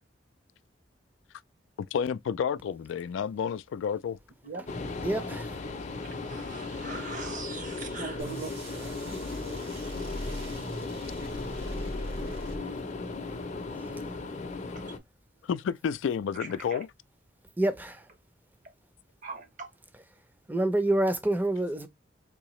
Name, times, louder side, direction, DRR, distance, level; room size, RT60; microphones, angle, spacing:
voice 1, 1.8-4.2 15.5-16.9, left 7 dB, 85° left, 0.3 m, -30 dB
sound 1, 4.7-15.0, left 3 dB, 40° left, 0.6 m, -37 dB
voice 2, 5.0-5.6 9.0-9.3 13.7-14.0 17.6-18.1 20.5-21.9, right 1 dB, 10° right, 0.5 m, -28 dB
voice 3, 6.0-9.7 16.3-16.8 19.2-19.7, right 4 dB, 45° right, 0.8 m, -41 dB
sound 2, 8.2-13.0, equal, 90° right, 1.9 m, -39 dB
3.8 x 2.7 x 3.1 m
head